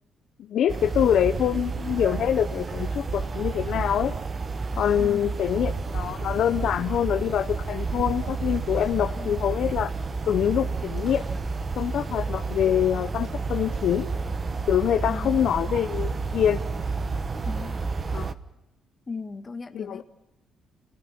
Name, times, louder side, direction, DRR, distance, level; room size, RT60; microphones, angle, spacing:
voice 1, 0.4-4.1 4.8-9.9 10.3-11.3 11.8-14.1 14.7-16.6 18.1-18.3 19.7-20.0, left 10 dB, 70° left, 9 dB, 0.8 m, -25 dB
sound 1, 0.7-18.3, right 4 dB, 35° right, 1.2 m, -30 dB
voice 2, 5.0-5.3 9.1-9.4 15.1-15.4 17.5-17.8 19.1-20.0, left 4 dB, 30° left, 7 dB, 1.9 m, -37 dB
sound 2, 11.0-12.0, equal, 10° right, 4.2 m, -49 dB
29.0 x 19.0 x 5.9 m, 0.93 s
cardioid pair, 90°, 0 cm